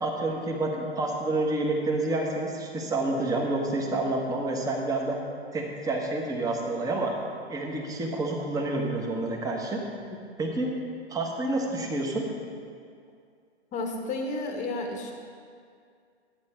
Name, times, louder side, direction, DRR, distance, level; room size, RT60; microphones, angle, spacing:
voice 1, 0.0-5.2 5.5-7.1 7.5-9.8 10.4-10.8 11.1-12.3, right 2 dB, 10° right, 0 dB, 1.3 m, -28 dB
voice 2, 13.7-15.1, left 2 dB, 20° left, 3 dB, 1.2 m, -31 dB
12.0 x 8.7 x 4.4 m, 2.3 s
hypercardioid pair, 130°, 33 cm